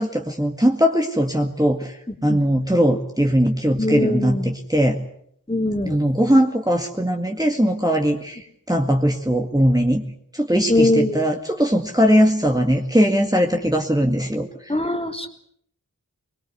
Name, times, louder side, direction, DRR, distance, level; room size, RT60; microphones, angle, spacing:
voice 1, 0.0-5.0 5.9-10.0 10.3-14.7, equal, 10° right, 2 dB, 2.0 m, -20 dB
voice 2, 3.8-4.5 5.5-6.0 8.7-8.8 10.7-11.2 14.7-15.3, left 1 dB, 15° left, 4 dB, 3.3 m, -21 dB
23.5 x 21.5 x 8.1 m, 0.67 s
wide cardioid pair, 45°, 34 cm